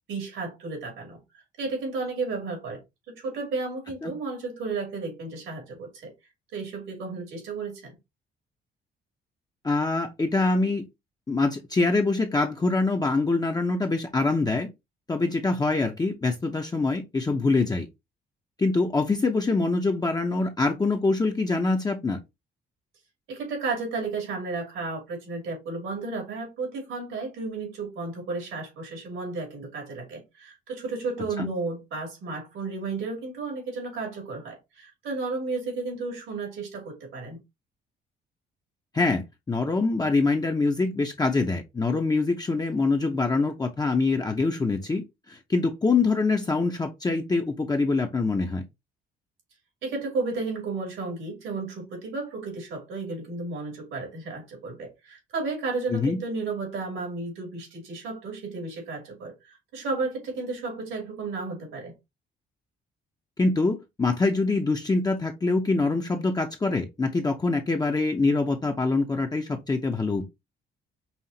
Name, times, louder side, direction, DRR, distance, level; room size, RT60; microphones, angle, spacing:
voice 1, 0.1-2.8 3.1-6.1 6.5-8.0 23.3-37.4 49.8-61.9, right 3 dB, 80° right, 2.6 m, -33 dB
voice 2, 9.6-10.8 11.3-14.7 15.1-17.9 18.6-22.2 31.4-31.5 38.9-48.6 55.9-56.2 63.4-70.2, left 3 dB, 20° left, 0.6 m, -24 dB
5.6 x 2.4 x 2.7 m
cardioid pair, 90°, 20 cm